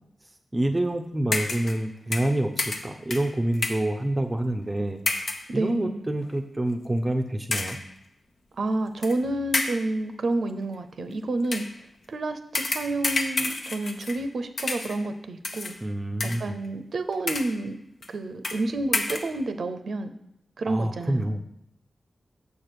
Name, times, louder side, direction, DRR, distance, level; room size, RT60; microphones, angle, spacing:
voice 1, 0.5-5.0 5.5-7.8 15.8-16.6 20.7-21.4, right 1 dB, 20° right, 4 dB, 0.6 m, -27 dB
sound 1, 1.3-1.9 2.1-3.9 5.1-5.5 6.2-6.4 7.5-7.9 9.0-9.2 9.5-10.0 11.4-11.8 12.5-14.3 14.6-15.1 15.4-15.8 16.2-16.7 17.1-17.6 18.0-18.1 18.4-18.7 18.9-19.3, left 3 dB, 60° left, 0.8 m, -30 dB
voice 2, 5.5-6.1 8.6-11.7 12.1-15.7 16.2-17.8 18.1-20.2 20.6-21.6, right 2 dB, 70° right, 8 dB, 0.6 m, -29 dB
7.0 x 4.5 x 6.8 m, 0.79 s
wide cardioid pair, 105°, 0 cm